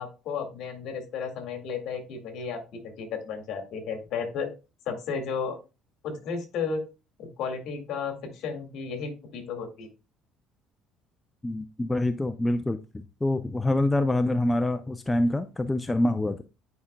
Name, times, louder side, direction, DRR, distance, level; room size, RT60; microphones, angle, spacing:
voice 1, 0.0-4.5 4.9-5.6 6.0-6.8 7.2-9.9, left 5 dB, 60° left, 4 dB, 1.9 m, -33 dB
voice 2, 11.4-16.4, left 1 dB, 10° left, 8 dB, 0.4 m, -26 dB
9.6 x 5.0 x 2.2 m, 0.29 s
cardioid pair, 145°, 0 cm